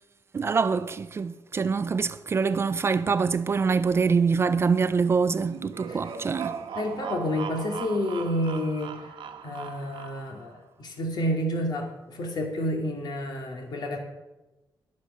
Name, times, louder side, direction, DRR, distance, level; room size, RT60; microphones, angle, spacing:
voice 1, 0.3-6.6, right 5 dB, 30° right, 0.4 m, -25 dB
sound 1, 5.4-10.5, right 7 dB, 90° right, 1.2 m, -39 dB
voice 2, 6.7-9.0 9.4-14.0, equal, 55° left, 2.4 m, -29 dB
11.0 x 10.0 x 6.5 m
wide cardioid pair, 170°, 8 cm